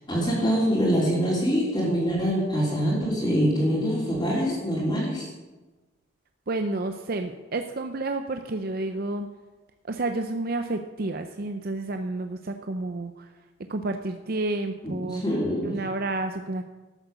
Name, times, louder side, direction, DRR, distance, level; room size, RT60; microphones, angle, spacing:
voice 1, 0.1-5.3 14.8-15.8, equal, 25° left, -6 dB, 3.4 m, -24 dB
voice 2, 6.5-9.3 9.8-13.3 13.7-15.2 15.6-16.6, right 2 dB, 50° right, 7 dB, 0.6 m, -30 dB
12.5 x 7.7 x 6.9 m, 1.2 s
head